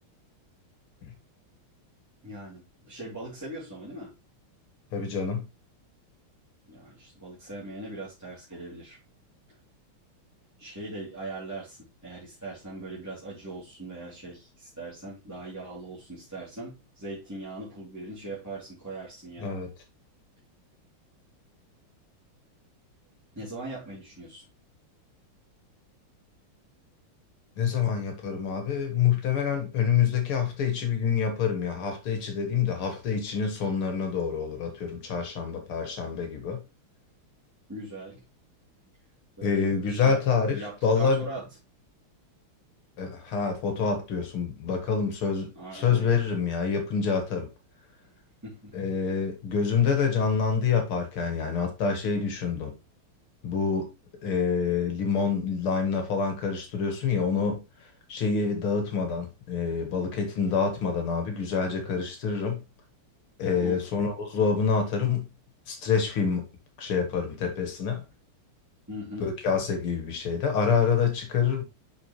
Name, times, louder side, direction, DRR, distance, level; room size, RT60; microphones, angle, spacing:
voice 1, 2.2-4.1 6.7-9.0 10.6-19.6 23.3-24.5 37.7-38.2 39.4-40.2 40.5-41.5 45.5-46.2 48.0-48.1 48.4-48.8 49.0-49.2 63.6-63.8 68.9-69.3, right 2 dB, 10° right, 2.6 m, -40 dB
voice 2, 4.9-5.4 19.4-19.7 27.6-36.6 39.4-40.6 40.8-41.2 43.0-47.5 48.7-52.7 53.4-53.9 54.2-57.6 58.1-62.6 63.4-65.3 65.7-66.4 66.8-68.0 69.2-71.6, left 6 dB, 80° left, 2.4 m, -27 dB
6.2 x 6.0 x 3.0 m
omnidirectional pair, 2.3 m